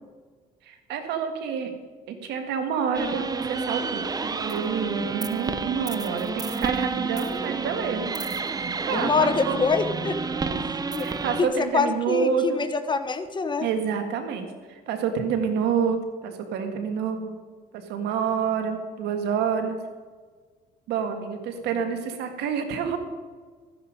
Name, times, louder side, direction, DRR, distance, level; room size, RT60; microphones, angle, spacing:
voice 1, 0.6-1.7 2.1-8.1 8.6-9.6 10.3-10.6 11.0-12.7 13.6-17.4 17.7-19.8 20.9-23.0, right 6 dB, 80° right, 6 dB, 1.9 m, -28 dB
sound 1, 2.9-11.4, right 4 dB, 20° right, 0.7 m, -30 dB
voice 2, 8.9-10.2 10.7-11.1 11.4-13.7, left 4 dB, 25° left, 9 dB, 1.0 m, -25 dB
13.5 x 10.0 x 5.2 m, 1.5 s
cardioid pair, 110°, 17 cm